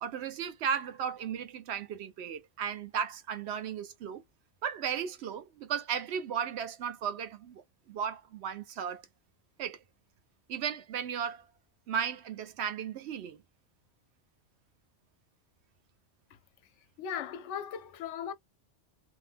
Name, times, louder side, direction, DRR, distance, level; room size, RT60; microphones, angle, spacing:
voice 1, 0.0-4.2 4.6-7.6 7.9-9.0 9.6-9.8 10.5-11.4 11.9-13.4, right 8 dB, 70° right, 0.9 m, -35 dB
voice 2, 17.0-18.3, left 8 dB, 80° left, 0.9 m, -38 dB
2.8 x 2.1 x 3.3 m
omnidirectional pair, 1.2 m